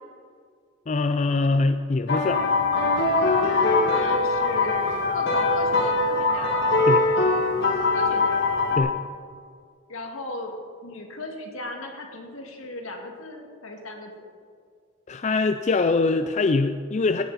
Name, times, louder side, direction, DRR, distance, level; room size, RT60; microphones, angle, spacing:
voice 1, 0.9-2.4 6.9-7.1 8.8-8.9 15.1-17.2, left 3 dB, 35° left, 8 dB, 0.4 m, -23 dB
sound 1, 2.1-8.8, left 3 dB, 55° left, 2.1 m, -22 dB
voice 2, 3.4-6.5 7.9-9.0 9.9-10.6 10.8-14.3, left 2 dB, 70° left, 2 dB, 2.1 m, -36 dB
17.0 x 10.0 x 4.1 m, 2.1 s
head